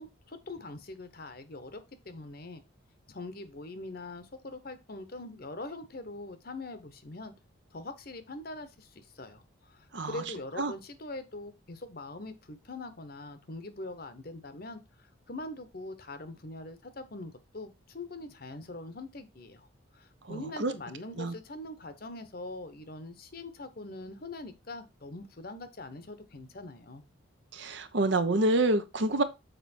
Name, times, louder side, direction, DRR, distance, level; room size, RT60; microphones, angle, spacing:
voice 1, 0.0-2.6 3.1-7.3 7.7-14.8 15.3-19.7 19.9-27.0, left 2 dB, 50° left, 0.9 m, -43 dB
voice 2, 9.9-10.2 10.6-10.7 20.3-20.7 21.2-21.3 27.5-29.2, right 2 dB, 60° right, 0.8 m, -27 dB
6.7 x 4.6 x 4.3 m
head